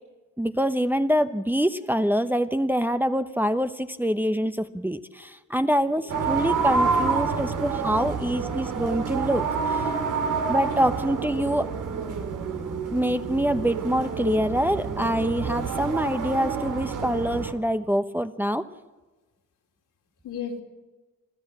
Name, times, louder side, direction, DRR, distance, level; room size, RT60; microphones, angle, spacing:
voice 1, 0.4-9.9 10.5-11.7 12.9-18.7, equal, 5° right, 8 dB, 1.0 m, -25 dB
voice 2, 5.8-6.1 6.6-8.4 20.2-20.6, left 6 dB, 75° left, 2 dB, 3.2 m, -41 dB
sound 1, 6.1-17.5, right 5 dB, 90° right, 2.4 m, -28 dB
26.5 x 14.5 x 7.7 m, 1.2 s
supercardioid pair, 65°, 31 cm